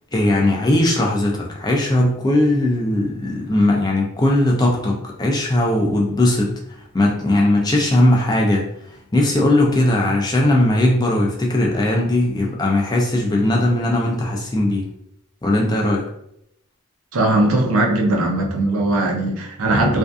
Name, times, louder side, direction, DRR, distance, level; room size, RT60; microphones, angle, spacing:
voice 1, 0.1-14.9 15.4-16.1, left 1 dB, 20° left, -1 dB, 0.4 m, -19 dB
voice 2, 17.1-20.0, right 1 dB, 75° right, 1 dB, 0.5 m, -19 dB
2.5 x 2.3 x 2.3 m, 0.74 s
head